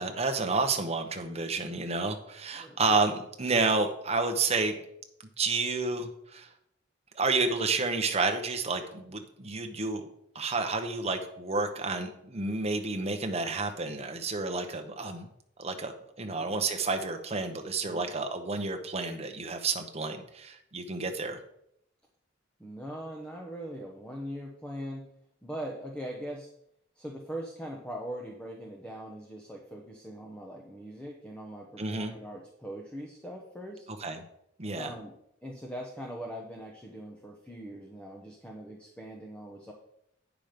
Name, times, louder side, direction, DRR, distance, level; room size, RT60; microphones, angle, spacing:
voice 1, 0.0-4.7 5.4-6.5 7.1-10.1 10.3-15.3 15.6-21.4 31.8-32.1 34.0-34.2 34.6-34.9, right 3 dB, 30° right, 5 dB, 1.0 m, -30 dB
voice 2, 16.2-16.6 17.8-18.1 22.6-25.1 25.4-26.5 27.0-33.9 34.6-35.2 35.4-39.7, equal, 5° left, 0 dB, 0.9 m, -41 dB
9.2 x 6.0 x 5.1 m, 0.76 s
head